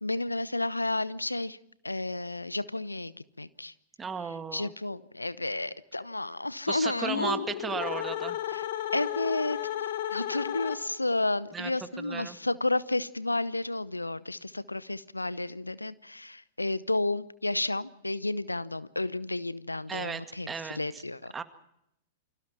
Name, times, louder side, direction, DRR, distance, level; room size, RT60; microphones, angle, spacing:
voice 1, 0.0-1.6 1.8-3.7 4.5-7.5 8.5-8.7 8.9-21.4, left 2 dB, 85° left, 18 dB, 0.8 m, -32 dB
voice 2, 4.0-4.7 6.7-8.4 11.5-11.7 12.0-12.4 19.9-20.2 20.5-21.0 21.3-21.4, right 6 dB, 15° right, 9 dB, 2.1 m, -35 dB
sound 1, 7.0-11.1, left 11 dB, 55° left, 1.5 m, -33 dB
29.0 x 25.5 x 4.5 m, 0.78 s
figure-of-eight pair, 100°, 0 cm